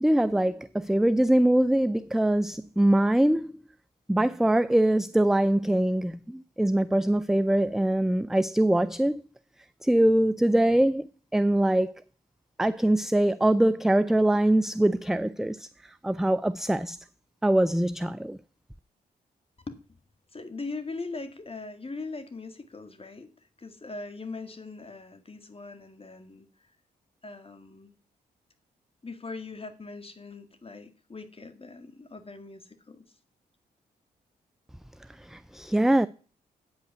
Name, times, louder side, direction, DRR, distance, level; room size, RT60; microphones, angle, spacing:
voice 1, 0.0-3.5 4.1-9.2 9.8-11.1 11.3-11.9 12.6-15.7 16.0-17.0 17.4-18.4 35.3-36.1, right 1 dB, ahead, 0.4 m, -23 dB
voice 2, 19.7-20.0 20.3-23.3 23.6-26.5 27.2-27.9 29.0-33.0, left 3 dB, 30° left, 1.9 m, -40 dB
8.8 x 5.7 x 6.7 m
hypercardioid pair, 40°, 19 cm